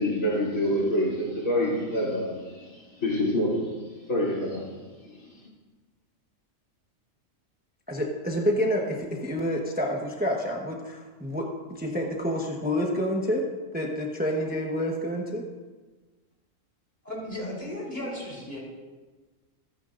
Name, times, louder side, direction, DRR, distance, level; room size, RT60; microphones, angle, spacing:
voice 1, 0.0-3.8 4.1-4.8 5.0-5.5, left 1 dB, 75° left, -5 dB, 3.7 m, -27 dB
voice 2, 7.9-11.4 11.7-13.4 13.7-15.4, equal, 5° right, -1 dB, 1.1 m, -28 dB
voice 3, 17.0-18.6, left 1 dB, 35° left, -4 dB, 4.1 m, -35 dB
27.0 x 10.0 x 2.6 m, 1.3 s
omnidirectional pair, 1.4 m